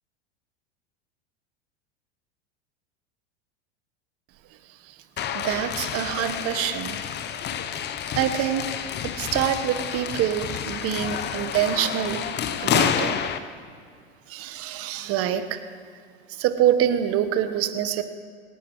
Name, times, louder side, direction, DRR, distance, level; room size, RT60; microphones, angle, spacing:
sound 1, 5.2-13.4, left 8 dB, 30° left, 0.9 m, -29 dB
voice 1, 5.3-7.0 8.1-8.7 9.0-12.3 12.6-13.2 14.3-15.6 16.3-18.0, right 10 dB, 40° right, 10 dB, 1.3 m, -25 dB
20.5 x 18.0 x 3.2 m, 2.3 s
hypercardioid pair, 90°, 34 cm